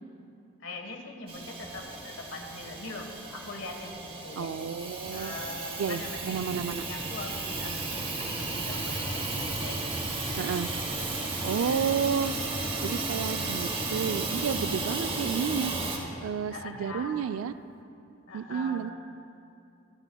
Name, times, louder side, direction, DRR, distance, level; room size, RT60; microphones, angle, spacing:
voice 1, 0.6-4.7 5.1-10.8 11.2-11.9 16.5-17.6 18.3-18.9, left 2 dB, 70° left, 3 dB, 1.3 m, -42 dB
Hiss / Toilet flush / Trickle dribble, 1.3-16.0, right 2 dB, 25° right, 1.1 m, -34 dB
voice 2, 4.4-5.3 5.8-6.8 10.4-10.7 11.4-12.3 12.8-15.7 16.2-17.5 18.3-18.9, right 7 dB, 80° right, 13 dB, 0.3 m, -31 dB
sound 1, 6.7-17.8, left 1 dB, 45° left, 1.0 m, -50 dB
24.5 x 8.9 x 2.3 m, 2.7 s
head